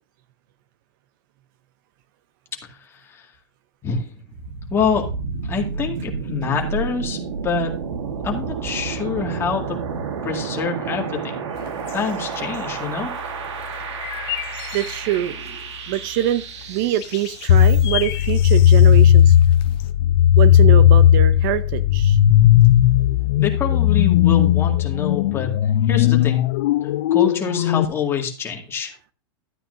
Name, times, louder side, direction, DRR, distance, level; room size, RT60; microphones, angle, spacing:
sound 1, 4.3-18.1, right 5 dB, 80° right, 1.5 m, -31 dB
voice 1, 4.7-5.1 5.5-7.2 7.4-7.7 8.2-9.8 10.2-11.3 11.9-13.1 23.4-25.5 25.9-26.4 27.1-28.9, left 5 dB, 15° left, 0 dB, 2.1 m, -25 dB
sound 2, 11.5-19.9, left 13 dB, 35° left, 0.8 m, -36 dB
voice 2, 14.7-15.6 15.9-16.4 16.7-19.4 20.4-22.2, right 12 dB, 50° right, 14 dB, 0.6 m, -24 dB
sound 3, 17.5-27.8, left 11 dB, 65° left, 0.5 m, -15 dB
13.0 x 8.9 x 2.7 m, 0.36 s
supercardioid pair, 150°, 14 cm